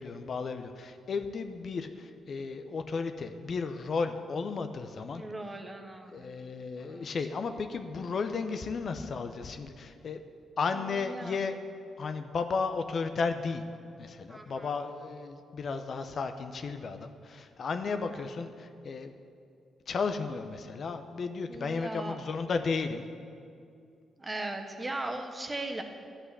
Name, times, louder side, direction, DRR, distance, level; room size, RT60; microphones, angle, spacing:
voice 1, 0.0-5.2 6.1-10.2 10.6-11.6 12.0-13.6 14.0-19.1 19.9-23.1, left 4 dB, 55° left, 8 dB, 0.7 m, -34 dB
voice 2, 5.1-6.3 6.8-7.1 10.7-11.4 14.3-14.7 17.9-18.3 21.5-22.2 24.2-25.8, right 2 dB, 25° right, 4 dB, 1.3 m, -39 dB
11.5 x 5.6 x 8.1 m, 2.4 s
supercardioid pair, 60°, 0 cm